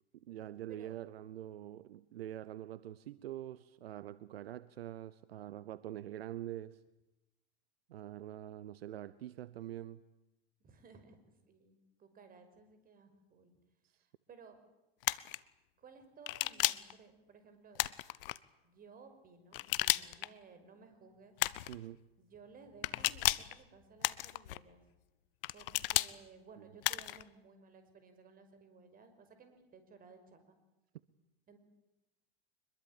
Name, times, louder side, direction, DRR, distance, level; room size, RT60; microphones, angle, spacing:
voice 1, 0.1-6.8 7.9-10.0 21.7-22.0 26.6-26.7, right 12 dB, 70° right, 0.9 m, -45 dB
voice 2, 10.6-11.2 11.5-13.5 14.3-14.6 15.8-17.8 18.6-21.4 22.2-24.8 25.5-30.6 31.5-31.6, right 5 dB, 30° right, 5.5 m, -58 dB
sound 1, 15.0-15.4 16.3-16.9 17.8-18.4 19.5-20.3 21.4-21.8 22.8-23.5 24.0-24.6 25.4-26.1 26.8-27.2, left 16 dB, 60° left, 0.9 m, -33 dB
25.0 x 22.0 x 8.9 m
hypercardioid pair, 95°, 31 cm